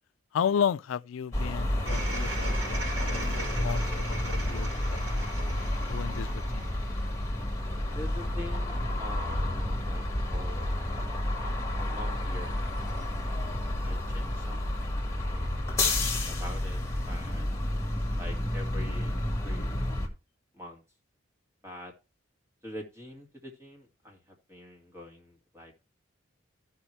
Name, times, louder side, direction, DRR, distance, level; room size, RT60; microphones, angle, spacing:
voice 1, 0.3-4.7 5.1-5.2 5.9-6.7, left 8 dB, 85° left, 0.3 m, -33 dB
sound 1, 1.3-20.1, left 1 dB, 15° left, 1.6 m, -30 dB
sound 2, 1.9-7.3, right 2 dB, 90° right, 4.4 m, -39 dB
voice 2, 7.9-10.0 10.3-10.7 11.8-12.9 13.8-14.6 15.3-15.6 15.9-16.8 17.1-17.5 18.2-19.2 19.4-19.8 20.5-20.8 21.6-21.9 22.6-25.9, left 1 dB, 15° right, 1.9 m, -45 dB
14.0 x 5.7 x 3.1 m
head